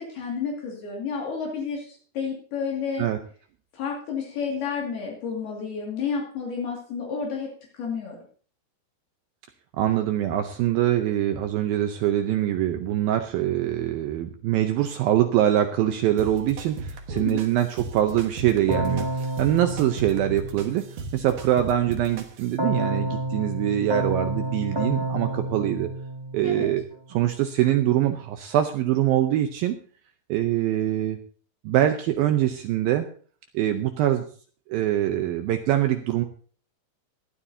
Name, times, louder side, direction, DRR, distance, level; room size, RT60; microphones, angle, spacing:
voice 1, 0.1-3.1 3.7-8.2 17.1-17.4 26.4-26.7, left 5 dB, 70° left, -2 dB, 4.2 m, -31 dB
voice 2, 9.8-20.9 21.1-25.9 26.3-26.8 27.1-29.8 30.3-31.2 31.6-33.1 33.5-34.3 34.7-36.2, right 12 dB, 80° right, 6 dB, 2.3 m, -24 dB
sound 1, 16.2-22.6, right 3 dB, 60° right, 1.9 m, -38 dB
Keyboard (musical), 18.7-21.0 22.6-26.9, right 2 dB, 10° right, 1.9 m, -30 dB
18.5 x 12.5 x 2.8 m, 0.43 s
omnidirectional pair, 4.8 m